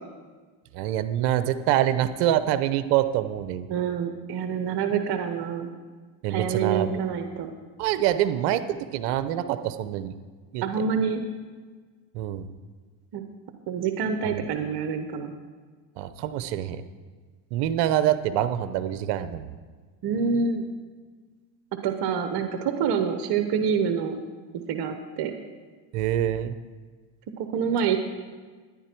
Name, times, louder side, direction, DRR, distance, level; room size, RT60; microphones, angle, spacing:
voice 1, 0.7-3.6 6.2-7.0 7.8-10.1 10.5-10.6 12.1-12.5 14.2-14.4 16.0-16.8 17.5-19.5 25.9-26.5, right 11 dB, 70° right, 12 dB, 0.8 m, -25 dB
voice 2, 3.7-5.7 6.3-7.5 10.6-11.2 13.1-13.2 13.7-15.3 20.0-20.6 21.8-24.2 24.7-25.3 27.4-28.0, right 6 dB, 50° right, 6 dB, 1.1 m, -26 dB
13.0 x 10.5 x 4.5 m, 1.5 s
supercardioid pair, 95°, 49 cm